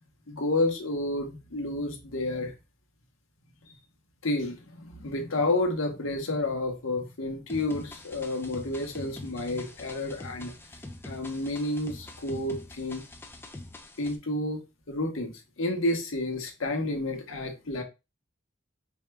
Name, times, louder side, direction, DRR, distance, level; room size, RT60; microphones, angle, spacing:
voice 1, 0.3-2.5 4.2-10.5 11.0-13.0 14.0-17.8, left 2 dB, 90° left, 1.0 m, -30 dB
sound 1, 7.5-14.2, left 1 dB, 10° left, 0.4 m, -44 dB
4.7 x 2.3 x 3.1 m
head